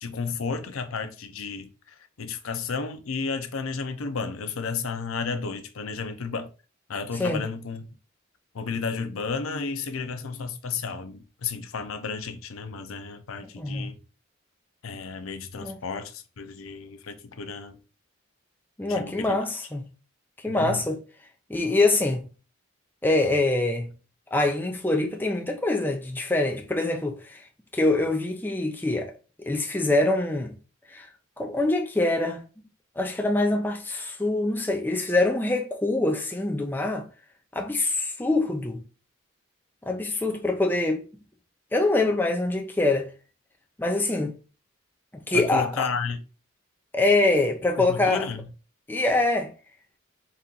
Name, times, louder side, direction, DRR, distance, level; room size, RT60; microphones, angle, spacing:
voice 1, 0.0-6.5 6.9-7.9 8.5-14.0 14.8-17.8 18.9-19.4 20.5-20.9 45.3-46.2 47.8-48.4, left 5 dB, 85° left, 0.6 m, -32 dB
voice 2, 13.6-13.9 15.6-15.8 18.8-19.8 20.4-21.0 21.5-22.3 23.0-23.9 24.3-27.4 27.7-29.1 29.4-30.5 30.9-31.1 31.4-32.6 33.0-37.1 37.5-38.8 39.8-41.0 41.7-43.1 43.8-44.3 45.1-45.9 46.9-48.3 48.9-49.5, left 2 dB, 10° left, 0.5 m, -24 dB
4.2 x 2.5 x 3.8 m
head